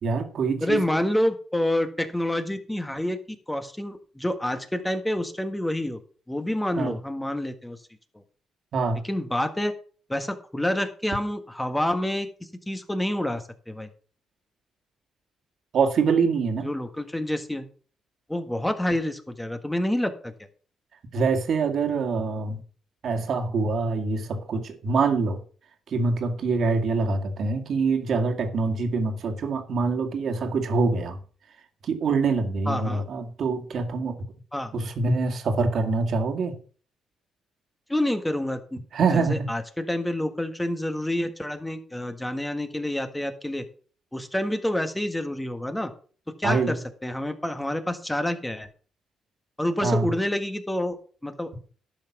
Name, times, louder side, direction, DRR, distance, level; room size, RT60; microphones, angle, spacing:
voice 1, 0.0-0.8 6.8-6.9 8.7-9.0 15.7-16.7 21.1-22.6 23.0-25.4 25.9-31.2 31.8-34.2 34.7-36.6 38.9-39.5 46.4-46.7 49.8-50.1, right 4 dB, 60° right, 2.0 m, -25 dB
voice 2, 0.6-3.2 3.5-6.0 6.3-7.8 9.0-9.7 10.1-12.3 12.7-13.9 16.6-17.7 18.3-20.3 32.7-33.0 34.5-34.7 37.9-38.8 39.1-43.6 44.1-45.9 46.4-48.7 49.6-51.0 51.2-51.5, left 1 dB, 10° left, 1.6 m, -28 dB
12.0 x 5.9 x 6.0 m
cardioid pair, 90°, 0 cm